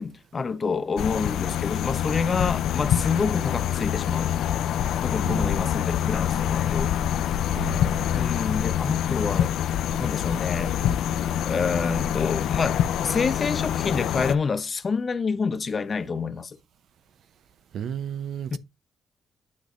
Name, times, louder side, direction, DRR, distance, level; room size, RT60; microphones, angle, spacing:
voice 1, 0.0-4.4 5.0-6.9 8.1-9.5 10.0-10.8 11.4-16.6 18.5-18.6, left 5 dB, 40° left, 0.8 m, -28 dB
sound 1, 1.0-14.4, left 10 dB, 80° left, 0.5 m, -26 dB
voice 2, 5.2-5.7 7.5-7.9 17.7-18.6, right 9 dB, 70° right, 0.7 m, -33 dB
9.6 x 6.2 x 2.6 m
cardioid pair, 90°, 0 cm